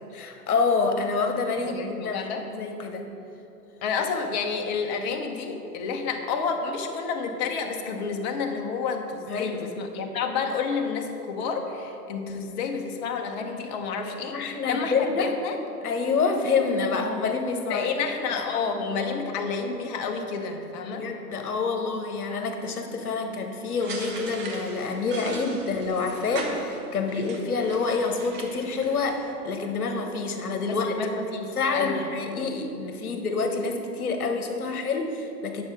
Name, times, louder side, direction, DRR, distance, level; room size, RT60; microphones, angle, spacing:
voice 1, 0.1-3.0 9.3-9.7 14.0-15.3 15.8-17.9 20.9-29.2 29.4-31.0 31.5-35.6, left 4 dB, 60° left, 5 dB, 1.2 m, -27 dB
voice 2, 1.6-2.5 3.8-15.6 17.7-21.1 30.7-32.0, left 5 dB, 30° left, 4 dB, 0.8 m, -30 dB
sound 1, 23.8-29.3, right 3 dB, 20° right, 1.0 m, -39 dB
9.9 x 6.5 x 5.2 m, 2.9 s
figure-of-eight pair, 105°, 49 cm